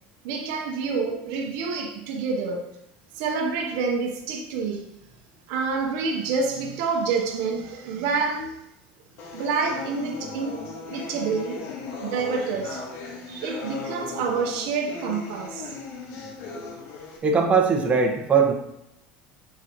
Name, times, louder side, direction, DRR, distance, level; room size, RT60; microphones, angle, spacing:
voice 1, 0.2-2.7 3.1-4.9 5.5-8.6 9.3-10.6 10.9-12.8 13.3-15.7, right 4 dB, 70° right, 1.0 m, -28 dB
sound 1, 9.2-17.2, left 3 dB, 55° left, 1.6 m, -37 dB
voice 2, 17.2-18.5, right 5 dB, 25° right, 1.4 m, -20 dB
9.1 x 4.5 x 3.1 m
supercardioid pair, 110°, 5 cm